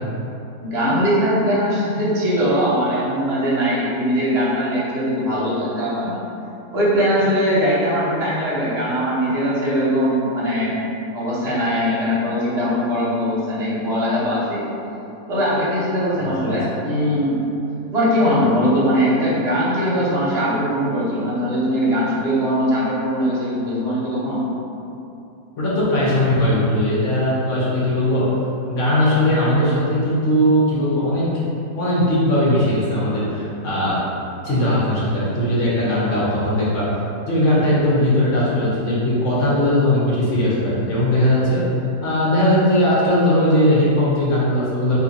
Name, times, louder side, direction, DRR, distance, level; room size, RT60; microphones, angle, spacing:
voice 1, 0.6-6.2 6.7-10.8 11.1-14.6 15.3-17.4 17.9-24.4, equal, 45° right, -8 dB, 0.9 m, -20 dB
voice 2, 25.6-28.3 28.7-31.3 31.8-34.0 34.4-37.0 37.3-41.6 42.0-45.0, left 1 dB, 55° left, -8 dB, 1.1 m, -19 dB
2.8 x 2.7 x 3.9 m, 2.8 s
omnidirectional pair, 1.8 m